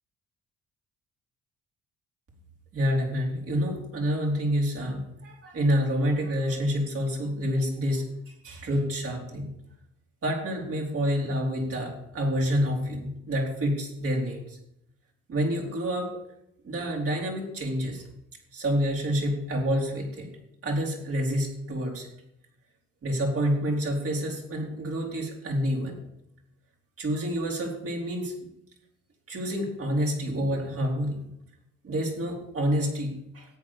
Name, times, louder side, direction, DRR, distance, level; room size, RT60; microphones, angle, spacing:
voice 1, 2.7-8.0 8.4-9.5 10.2-14.6 15.3-16.1 16.6-18.0 18.5-20.3 20.6-22.1 23.0-26.0 27.0-28.3 29.3-31.2 31.8-33.5, equal, 50° right, -1 dB, 4.4 m, -28 dB
13.5 x 9.2 x 5.1 m, 0.80 s
cardioid pair, 90°, 30 cm